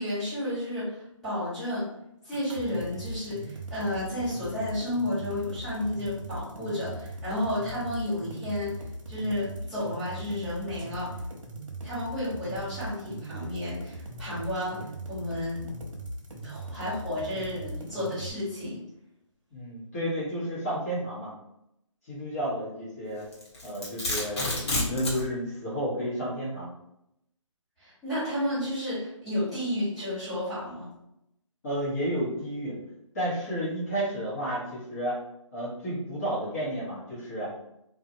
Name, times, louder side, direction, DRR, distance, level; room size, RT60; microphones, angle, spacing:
voice 1, 0.0-1.9 2.2-8.8 9.1-11.2 11.8-15.7 16.4-18.8 27.8-30.9, left 1 dB, ahead, -16 dB, 1.3 m, -32 dB
sound 1, 2.3-18.3, right 1 dB, 70° right, 0.8 m, -39 dB
voice 2, 19.5-21.3 22.1-23.3 23.6-26.7 31.6-32.8 33.1-35.2 35.5-37.5, equal, 30° left, -10 dB, 1.1 m, -31 dB
Domestic sounds home sounds, 23.3-25.2, left 2 dB, 55° left, 1.2 m, -29 dB
2.8 x 2.4 x 2.7 m, 0.81 s
figure-of-eight pair, 155°, 17 cm